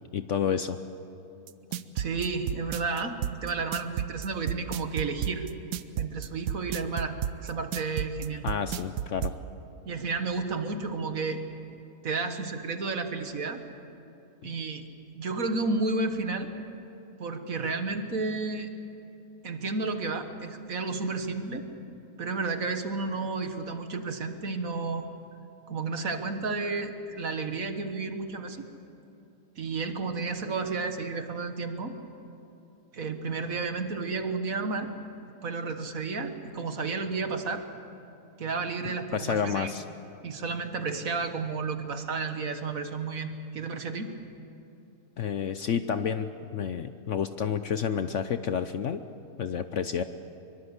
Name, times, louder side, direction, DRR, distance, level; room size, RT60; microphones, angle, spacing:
voice 1, 0.1-0.8 8.4-9.3 14.4-14.5 39.1-39.8 45.2-49.0 49.4-50.0, left 7 dB, 60° left, 10 dB, 0.9 m, -30 dB
sound 1, 1.5-9.4, right 10 dB, 85° right, 1.3 m, -31 dB
voice 2, 2.0-5.5 6.0-8.5 9.9-11.4 12.0-13.6 14.4-14.8 15.1-16.5 17.2-18.7 19.4-21.7 22.2-25.1 25.7-28.7 29.6-31.9 32.9-34.9 35.4-37.6 38.4-39.7 40.2-44.1, right 4 dB, 60° right, 7 dB, 1.8 m, -32 dB
23.5 x 23.0 x 8.2 m, 2.8 s
omnidirectional pair, 1.7 m